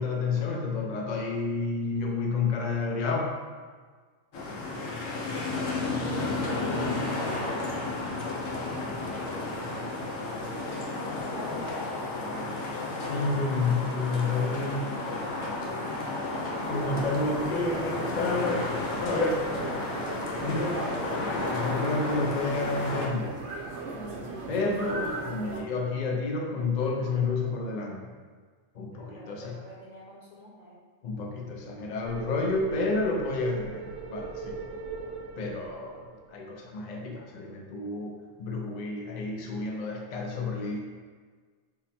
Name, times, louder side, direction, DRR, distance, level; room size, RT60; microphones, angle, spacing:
voice 1, 0.0-3.3 13.1-14.8 16.7-18.7 19.0-19.5 20.4-20.8 21.5-23.4 23.9-28.0 28.7-29.5 31.0-34.6 35.4-40.8, left 3 dB, 70° left, 1 dB, 0.4 m, -30 dB
sound 1, 4.3-23.1, left 2 dB, 85° left, 1.2 m, -32 dB
voice 2, 5.4-12.9 13.7-17.2 28.9-30.8, left 1 dB, 40° left, -8 dB, 1.1 m, -45 dB
sound 2, 16.6-25.6, right 3 dB, 65° right, 0.9 m, -38 dB
sound 3, 32.0-36.4, right 5 dB, 85° right, 1.0 m, -40 dB
5.5 x 2.1 x 4.1 m, 1.5 s
omnidirectional pair, 1.4 m